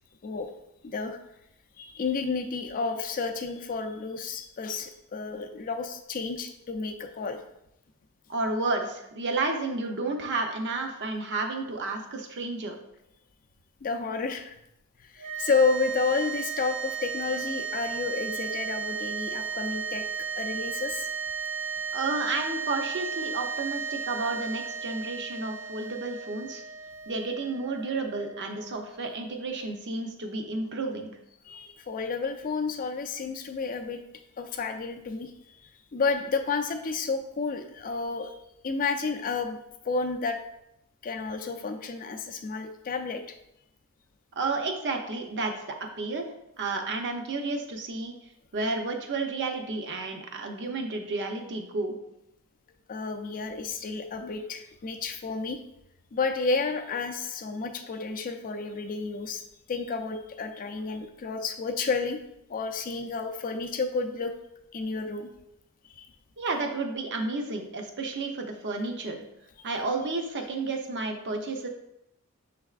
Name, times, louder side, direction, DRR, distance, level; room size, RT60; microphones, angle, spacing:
voice 1, 0.8-1.2 1.8-7.4 13.8-14.6 15.0-20.1 20.4-21.1 31.4-34.0 34.4-35.6 35.9-38.3 38.6-39.6 39.8-40.4 41.0-43.4 52.9-55.6 56.1-59.4 59.7-62.2 62.5-64.3 64.7-65.3 65.9-66.1, left 4 dB, 40° left, 6 dB, 0.4 m, -31 dB
voice 2, 8.3-12.8 21.9-26.6 27.1-31.1 44.4-46.3 46.6-48.1 48.5-52.0 66.4-69.2 69.6-71.7, right 3 dB, 50° right, 4 dB, 0.6 m, -31 dB
sound 1, 15.2-29.6, right 6 dB, 75° right, 1.6 m, -35 dB
6.4 x 3.4 x 2.4 m, 0.82 s
head